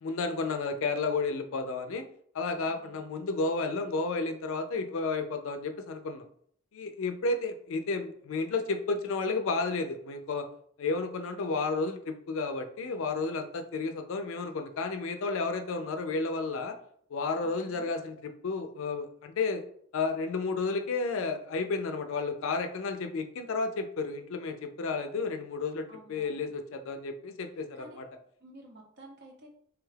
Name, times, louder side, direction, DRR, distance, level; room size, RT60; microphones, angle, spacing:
voice 1, 0.0-2.0 2.3-6.2 6.7-10.5 10.8-16.7 17.1-19.6 19.9-28.0, left 3 dB, 70° left, 7 dB, 0.4 m, -32 dB
voice 2, 2.7-3.0 17.4-17.9 25.9-26.5 27.7-28.0 28.4-29.5, right 1 dB, 55° right, 1 dB, 0.7 m, -52 dB
3.3 x 2.3 x 3.2 m, 0.63 s
head